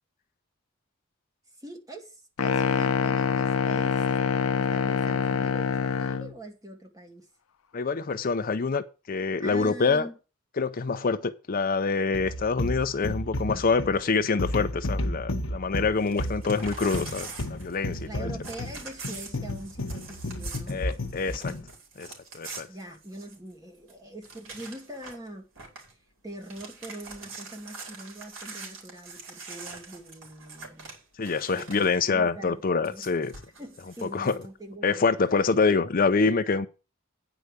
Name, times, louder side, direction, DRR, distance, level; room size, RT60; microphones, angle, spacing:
voice 1, 1.6-7.3 9.4-10.2 18.1-20.8 22.7-25.5 26.2-31.0 31.5-32.6 32.9-33.1 33.6-35.1, right 1 dB, 15° right, 2.1 m, -43 dB
sound 1, 2.4-6.3, left 6 dB, 90° left, 0.6 m, -25 dB
voice 2, 7.7-10.1 10.6-18.3 20.7-21.5 22.0-22.1 22.3-22.7 31.2-33.3 34.0-34.4 34.8-36.7, left 4 dB, 45° left, 0.5 m, -26 dB
sound 2, 12.1-21.7, left 1 dB, 70° left, 1.2 m, -32 dB
Crumpling crinkling / Tearing, 16.0-18.1 18.4-23.5 23.9-24.0 24.2-25.3 25.5-25.9 26.3-32.0 32.8-34.4, right 4 dB, 70° right, 4.0 m, -44 dB
9.5 x 4.9 x 7.9 m
head